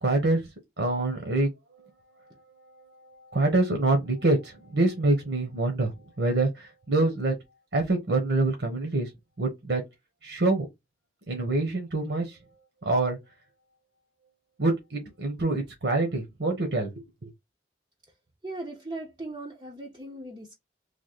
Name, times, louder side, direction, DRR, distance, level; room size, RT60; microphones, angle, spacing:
voice 1, 0.0-0.4 0.8-1.5 3.0-5.9 6.2-7.3 7.7-9.1 9.4-9.8 10.2-10.7 11.3-12.4 12.8-13.2 14.6-17.3, right 2 dB, 75° right, 1.0 m, -25 dB
voice 2, 18.4-20.5, right 2 dB, 25° right, 0.6 m, -38 dB
3.3 x 2.1 x 4.1 m
head